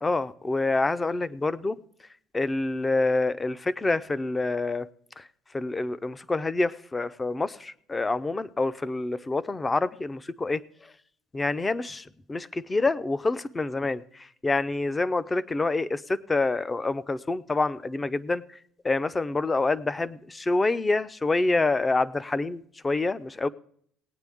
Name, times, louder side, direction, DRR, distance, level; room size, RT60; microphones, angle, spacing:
voice 1, 0.0-1.8 2.3-4.9 5.2-5.3 5.5-10.6 11.3-14.0 14.4-18.4 18.8-23.5, left 3 dB, 20° left, 16 dB, 0.5 m, -27 dB
18.5 x 9.0 x 3.5 m, 0.64 s
cardioid pair, 115°, 0 cm